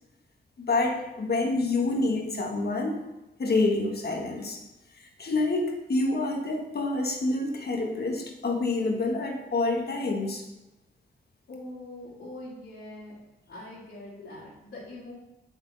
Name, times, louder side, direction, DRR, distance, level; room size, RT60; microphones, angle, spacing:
voice 1, 0.6-3.0 3.4-4.6 5.0-10.4 14.2-14.3, left 2 dB, 55° left, 2 dB, 1.5 m, -27 dB
voice 2, 11.5-13.2 13.5-15.1, left 1 dB, 80° left, -9 dB, 2.2 m, -43 dB
7.0 x 5.9 x 4.0 m, 0.98 s
cardioid pair, 55°, 19 cm